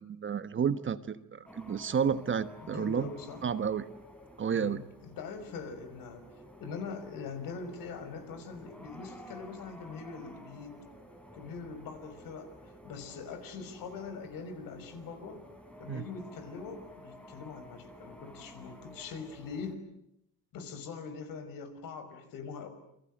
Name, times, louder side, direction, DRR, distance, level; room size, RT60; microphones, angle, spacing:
voice 1, 0.0-3.1 3.4-3.9 4.4-4.8 15.9-16.0, right 7 dB, 35° right, 13 dB, 1.3 m, -31 dB
sound 1, 1.5-19.8, equal, 5° left, 3.9 m, -52 dB
voice 2, 2.6-3.4 4.5-6.3 6.6-10.8 11.3-15.4 15.8-19.8 20.5-22.7, left 5 dB, 65° left, 9 dB, 5.8 m, -42 dB
29.5 x 24.0 x 7.8 m, 0.79 s
cardioid pair, 120°, 36 cm